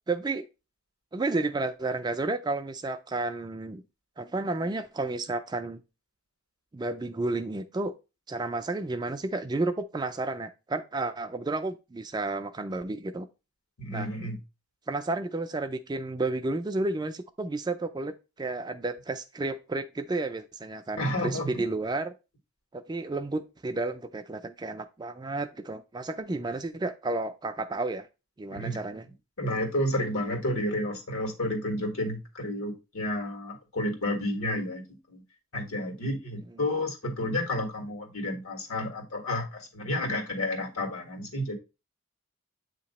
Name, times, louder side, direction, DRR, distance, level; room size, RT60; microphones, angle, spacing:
voice 1, 0.1-0.4 1.1-3.8 4.2-5.8 6.7-7.9 8.3-13.3 13.9-14.1 14.9-22.1 22.7-28.1 28.4-29.0, right 2 dB, 20° right, 8 dB, 0.3 m, -31 dB
voice 2, 13.8-14.4 21.0-21.6 28.5-28.8 29.4-35.2 35.5-41.5, left 1 dB, 75° left, 4 dB, 1.6 m, -31 dB
8.1 x 2.9 x 4.1 m, 0.28 s
head